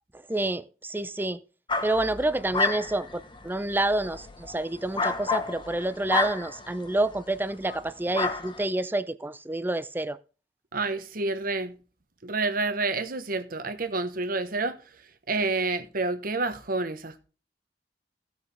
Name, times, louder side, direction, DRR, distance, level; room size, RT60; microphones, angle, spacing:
voice 1, 0.1-1.4 1.8-10.2, right 2 dB, 10° right, 0.6 m, -28 dB
sound 1, 1.7-7.2 7.6-7.8 8.1-8.6, left 3 dB, 30° left, 1.1 m, -31 dB
voice 2, 10.7-11.8 12.2-14.8 15.3-17.2, right 3 dB, 55° right, 1.2 m, -29 dB
16.5 x 6.5 x 3.4 m
head